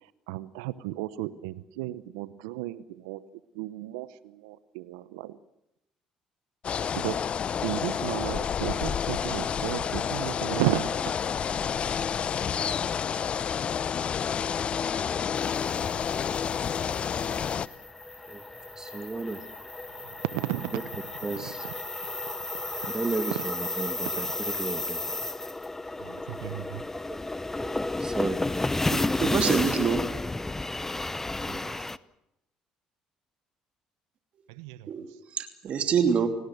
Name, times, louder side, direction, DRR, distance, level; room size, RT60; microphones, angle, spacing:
voice 1, 0.3-3.2 3.5-5.4 6.9-7.2 7.6-11.2 11.6-11.7 20.2-20.8 26.0-26.8 31.5-31.6 34.5-34.9, right 16 dB, 85° right, 0.9 m, -33 dB
sound 1, 6.6-17.7, left 7 dB, 50° left, 0.8 m, -29 dB
sound 2, 15.5-32.0, left 2 dB, 15° left, 0.8 m, -32 dB
voice 2, 18.7-20.2 20.7-20.8 21.2-21.7 22.9-25.0 26.9-28.7 29.4-29.6 31.4-31.8, right 3 dB, 25° right, 2.1 m, -34 dB
voice 3, 28.9-30.0 34.9-36.3, right 7 dB, 55° right, 3.0 m, -26 dB
29.0 x 18.5 x 6.5 m
hypercardioid pair, 60°, 3 cm